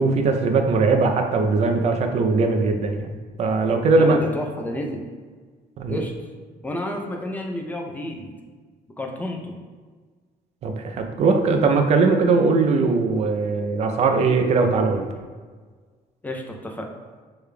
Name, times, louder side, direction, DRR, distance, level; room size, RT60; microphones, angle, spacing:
voice 1, 0.0-3.1 3.4-4.2 5.8-6.0 10.6-15.1, right 4 dB, 45° right, 5 dB, 0.5 m, -20 dB
voice 2, 4.0-5.0 5.9-6.1 6.6-8.3 9.0-9.5 16.2-16.9, left 1 dB, 10° left, 1 dB, 0.4 m, -30 dB
6.7 x 3.2 x 2.2 m, 1.5 s
cardioid pair, 150°, 16 cm